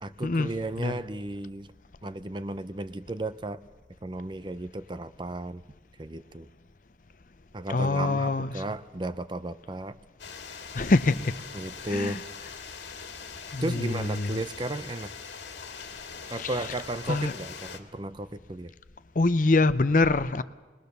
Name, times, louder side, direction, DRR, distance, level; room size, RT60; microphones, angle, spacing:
voice 1, 0.0-1.7 2.0-3.6 4.0-5.6 6.0-6.5 7.5-10.0 11.5-12.2 13.6-15.1 16.3-18.7, right 2 dB, 25° right, 0.6 m, -34 dB
voice 2, 7.7-8.5 10.7-11.4 11.9-12.2 13.5-14.4 16.4-16.5 17.1-17.3 19.2-20.4, left 3 dB, 50° left, 0.6 m, -24 dB
sound 1, 10.2-17.8, left 5 dB, 90° left, 2.0 m, -42 dB
22.5 x 20.5 x 6.8 m
head